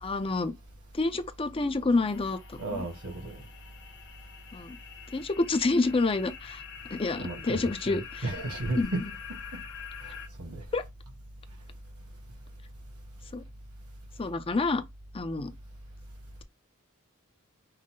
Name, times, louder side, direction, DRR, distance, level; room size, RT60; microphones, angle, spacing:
voice 1, 0.0-0.5 0.9-2.9 4.5-4.8 5.1-6.6 6.9-8.4 8.8-9.1 10.7-10.8 13.3-13.4 14.2-14.8 15.1-15.5, left 3 dB, 25° left, 0.5 m, -28 dB
sound 1, 2.1-10.3, left 8 dB, 55° left, 0.8 m, -45 dB
voice 2, 2.6-3.4 7.1-9.0 9.5-9.6 10.0-10.6, right 2 dB, 75° right, 1.8 m, -34 dB
5.7 x 2.1 x 3.7 m
head